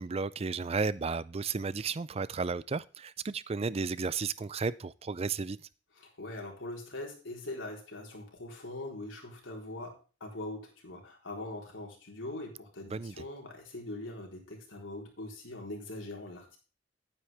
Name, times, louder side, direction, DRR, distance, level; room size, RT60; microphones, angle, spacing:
voice 1, 0.0-5.7 12.9-13.1, right 4 dB, 30° right, 0.4 m, -33 dB
voice 2, 6.0-10.0 10.2-16.6, left 2 dB, 90° left, 4.0 m, -42 dB
11.5 x 9.6 x 3.5 m
head